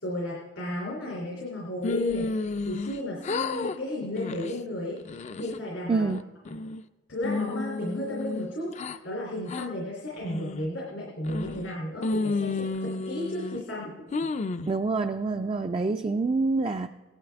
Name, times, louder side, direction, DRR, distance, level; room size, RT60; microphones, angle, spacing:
voice 1, 0.0-6.0 7.1-13.9, left 1 dB, 85° left, -5 dB, 3.1 m, -34 dB
sound 1, 1.8-3.0 3.2-3.8 4.2-4.5 5.0-5.6 6.1-6.8 7.2-9.0 9.5-9.7 10.2-10.7 11.2-11.7 12.0-13.6 14.1-14.7, left 3 dB, 40° left, 0.4 m, -31 dB
voice 2, 5.9-6.2 14.7-16.9, right 3 dB, 30° right, 6 dB, 0.3 m, -26 dB
17.5 x 12.0 x 3.5 m, 1.2 s
head